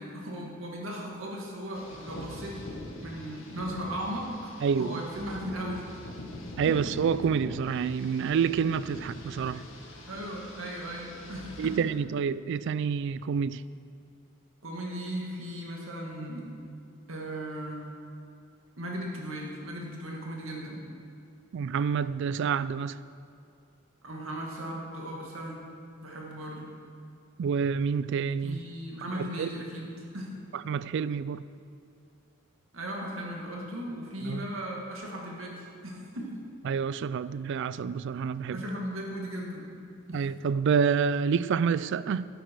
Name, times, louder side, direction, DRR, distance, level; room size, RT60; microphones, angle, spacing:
voice 1, 0.0-2.7 3.0-5.9 6.6-6.8 10.1-11.8 14.6-16.5 17.1-18.0 18.8-20.9 24.0-25.6 26.0-26.7 28.4-29.9 30.1-30.4 32.7-36.4 38.5-39.7 40.1-40.2, equal, 80° right, 2.1 m, -37 dB
sound 1, 1.7-11.8, left 1 dB, 75° left, 1.7 m, -44 dB
voice 2, 4.6-5.0 6.6-9.6 11.6-13.6 21.5-23.0 27.4-28.6 29.2-29.5 30.7-31.4 34.2-34.5 36.7-38.6 40.1-42.3, right 6 dB, 60° right, 0.3 m, -28 dB
12.0 x 9.2 x 4.7 m
head